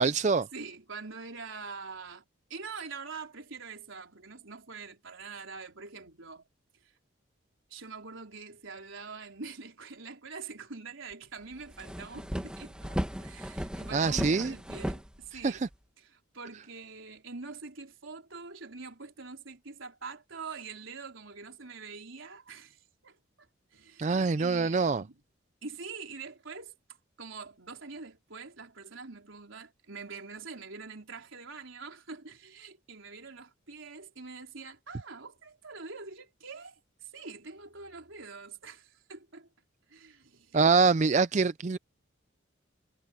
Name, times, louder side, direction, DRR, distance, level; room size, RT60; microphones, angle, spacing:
voice 1, 0.0-0.4 13.9-14.5 15.4-15.6 24.0-25.0 40.5-41.8, right 4 dB, 35° right, 0.4 m, -24 dB
voice 2, 0.5-2.2 2.5-6.5 6.8-6.9 7.7-15.6 16.0-23.5 23.7-25.2 25.6-26.8 27.2-39.5 39.9-40.7, right 4 dB, 85° right, 3.9 m, -45 dB
sound 1, 11.1-11.2 11.5-15.7, equal, 5° right, 1.6 m, -36 dB
head